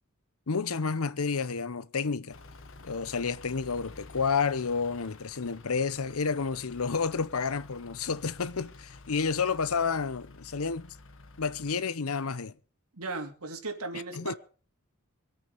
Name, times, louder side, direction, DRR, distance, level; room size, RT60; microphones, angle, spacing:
voice 1, 0.5-2.3 2.8-10.9 11.4-12.5 14.1-14.3, left 5 dB, 80° left, 0.8 m, -30 dB
Truck / Idling, 2.3-11.7, left 3 dB, 65° left, 1.5 m, -51 dB
voice 2, 12.9-14.4, right 3 dB, 90° right, 2.9 m, -36 dB
24.0 x 8.8 x 5.2 m
head